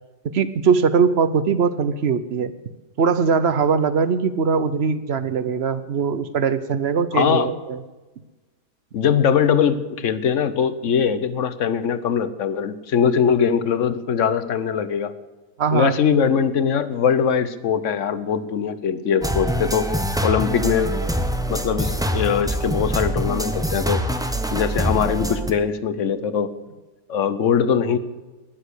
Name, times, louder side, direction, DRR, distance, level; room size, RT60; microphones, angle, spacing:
voice 1, 0.3-2.5 3.0-7.8 15.6-16.0, right 5 dB, 50° right, 14 dB, 0.8 m, -21 dB
voice 2, 7.1-7.5 8.9-15.1 15.7-19.9 20.2-20.9 21.5-24.0 24.5-26.5 27.1-28.0, left 7 dB, 55° left, 14 dB, 1.1 m, -21 dB
sound 1, 19.2-25.5, right 1 dB, 5° right, 0.6 m, -24 dB
13.0 x 10.5 x 8.1 m, 1.2 s
omnidirectional pair, 1.8 m